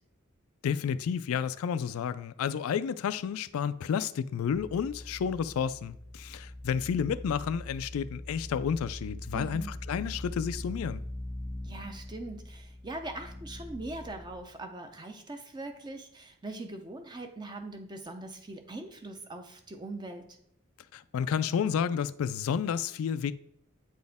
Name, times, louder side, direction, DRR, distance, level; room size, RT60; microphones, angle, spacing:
voice 1, 0.6-11.0 20.9-23.3, left 7 dB, 80° left, 0.3 m, -31 dB
sound 1, 4.5-14.4, left 1 dB, ahead, 1.1 m, -42 dB
voice 2, 9.3-9.7 11.6-20.2, right 2 dB, 20° right, 0.7 m, -41 dB
8.6 x 4.2 x 3.5 m
head